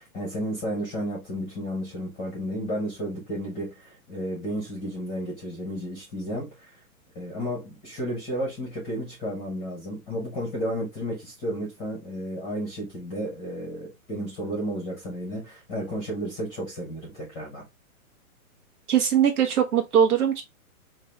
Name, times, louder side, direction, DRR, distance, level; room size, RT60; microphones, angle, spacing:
voice 1, 0.0-6.8 7.1-17.6, equal, 10° left, 0.8 m, -32 dB
voice 2, 18.9-20.4, right 8 dB, 80° right, 1.1 m, -21 dB
3.9 x 2.6 x 3.1 m
hypercardioid pair, 160°, 44 cm